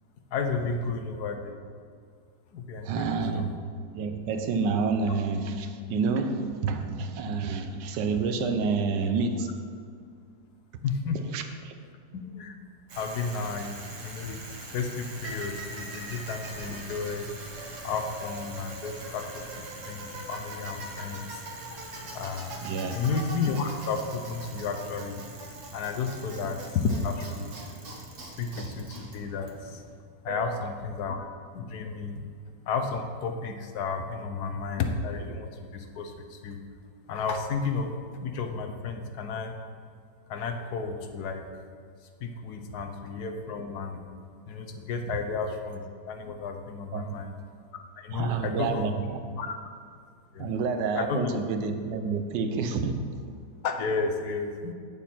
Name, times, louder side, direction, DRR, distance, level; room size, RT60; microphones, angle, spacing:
voice 1, 0.3-1.5 2.5-3.5 10.8-11.2 12.1-12.5 13.0-13.8 14.0-17.3 17.8-19.4 19.9-21.4 21.7-21.8 22.1-22.6 22.9-25.2 25.7-27.5 28.4-29.8 30.2-32.2 32.7-36.6 37.1-37.9 38.2-39.5 40.3-41.4 42.2-44.0 44.5-47.3 48.0-48.9 49.4-49.5 50.3-50.5 50.9-51.3 53.6-54.7, left 4 dB, 70° left, 5 dB, 1.2 m, -32 dB
voice 2, 2.8-3.5 3.9-9.6 11.1-11.7 22.6-22.9 30.3-30.7 46.9-47.2 48.1-49.2 50.4-53.1, right 4 dB, 80° right, 7 dB, 1.3 m, -29 dB
Bicycle, 12.9-30.0, right 2 dB, 50° right, 1.5 m, -41 dB
8.1 x 7.2 x 4.3 m, 2.1 s
omnidirectional pair, 1.9 m